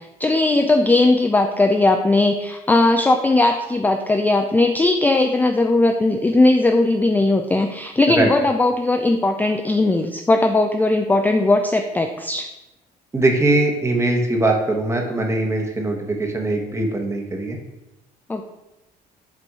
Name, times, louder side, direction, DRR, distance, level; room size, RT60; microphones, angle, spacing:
voice 1, 0.0-12.5 18.3-18.4, left 2 dB, 10° left, 5 dB, 0.4 m, -18 dB
voice 2, 13.1-17.6, right 2 dB, 15° right, 2 dB, 1.1 m, -21 dB
7.4 x 2.6 x 4.8 m, 0.95 s
cardioid pair, 110°, 17 cm